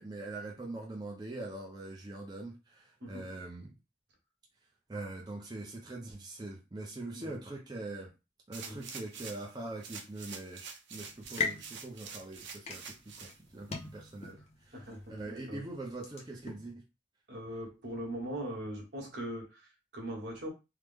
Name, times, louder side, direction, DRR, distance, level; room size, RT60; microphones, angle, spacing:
voice 1, 0.0-3.7 4.9-8.1 8.5-14.4 14.7-16.8, right 2 dB, 25° right, 0.5 m, -43 dB
sound 1, 8.5-9.5 9.8-13.3 13.8-13.9, right 5 dB, 90° right, 0.6 m, -46 dB
sound 2, 11.0-16.7, left 5 dB, 35° left, 0.5 m, -41 dB
voice 2, 14.7-15.6 17.3-20.5, right 1 dB, 75° right, 1.2 m, -41 dB
3.2 x 2.1 x 3.5 m
head